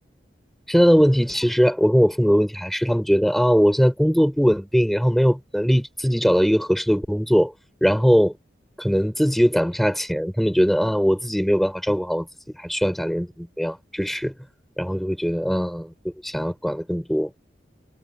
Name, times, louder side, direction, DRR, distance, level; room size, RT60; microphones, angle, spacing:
voice 1, 0.7-7.5 7.8-8.3 8.8-12.3 12.6-14.3 14.8-15.9 16.2-17.3, equal, ahead, 4.6 m, -20 dB
head